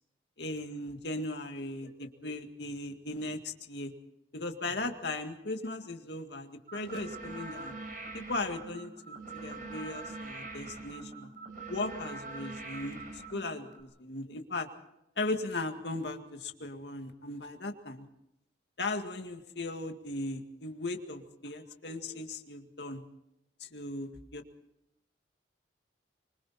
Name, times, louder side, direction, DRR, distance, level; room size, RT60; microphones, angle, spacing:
voice 1, 0.4-3.9 4.3-7.7 8.1-11.3 11.7-14.7 15.2-18.1 18.8-23.0 23.6-24.4, left 2 dB, 70° left, 5 dB, 2.1 m, -37 dB
sound 1, 6.7-13.8, right 3 dB, 50° right, 4.5 m, -43 dB
25.0 x 25.0 x 4.3 m, 0.86 s
head